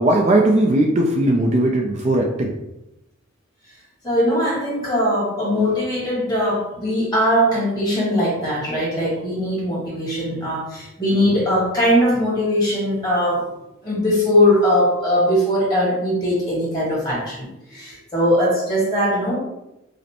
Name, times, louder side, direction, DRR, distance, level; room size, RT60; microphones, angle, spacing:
voice 1, 0.0-2.5, right 1 dB, 35° right, 0 dB, 0.3 m, -18 dB
voice 2, 4.0-13.5 13.8-19.3, equal, 20° left, -6 dB, 1.3 m, -20 dB
5.1 x 2.0 x 2.8 m, 0.91 s
head